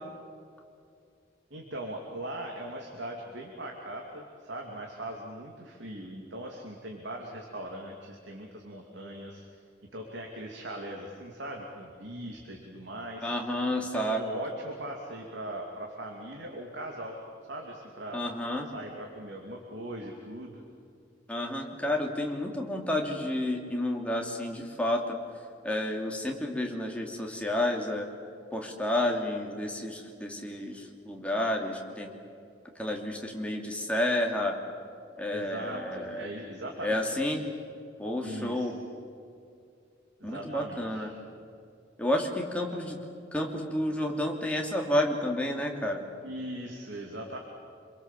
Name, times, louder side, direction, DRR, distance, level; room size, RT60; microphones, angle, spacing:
voice 1, 1.5-9.5 9.9-13.3 13.9-17.2 17.5-18.2 18.7-20.6 35.3-37.2 38.2-38.7 40.2-41.1 42.7-42.8 46.2-47.4, right 1 dB, 75° right, 1 dB, 2.8 m, -40 dB
voice 2, 13.2-14.2 18.1-18.7 21.3-25.2 25.6-28.1 28.5-32.1 32.7-34.6 35.2-36.3 36.8-37.4 38.0-38.8 40.2-41.1 42.0-43.0 43.3-46.0, left 1 dB, 5° left, 0 dB, 2.8 m, -30 dB
28.0 x 22.5 x 7.5 m, 2.4 s
head